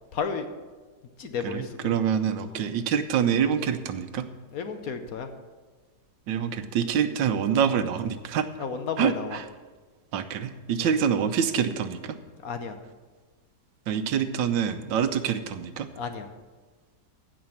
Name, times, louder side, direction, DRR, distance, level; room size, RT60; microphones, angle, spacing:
voice 1, 0.1-0.5 1.2-1.9 2.4-2.6 4.5-5.3 8.6-9.4 10.8-10.9 12.4-12.8 15.9-16.3, left 5 dB, 60° left, 8 dB, 1.1 m, -33 dB
voice 2, 1.4-4.3 6.3-8.5 9.0-9.1 10.1-12.2 13.9-15.9, right 8 dB, 85° right, 10 dB, 1.5 m, -26 dB
15.5 x 5.2 x 7.1 m, 1.4 s
omnidirectional pair, 2.0 m